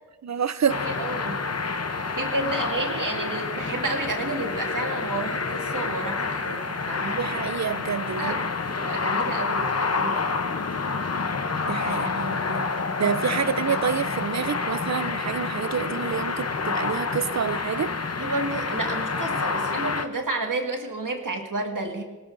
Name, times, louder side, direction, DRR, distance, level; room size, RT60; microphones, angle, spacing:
voice 1, 0.2-0.9 7.2-8.5 11.7-12.7 13.0-17.9, right 7 dB, 55° right, 15 dB, 0.6 m, -28 dB
sound 1, 0.7-20.1, left 4 dB, 50° left, 0.9 m, -28 dB
voice 2, 0.8-1.4 1.9-7.2 8.2-8.4 8.7-10.3 18.2-22.0, right 2 dB, 70° right, 2 dB, 2.0 m, -31 dB
20.5 x 18.0 x 2.6 m, 1.2 s
wide cardioid pair, 50°, 33 cm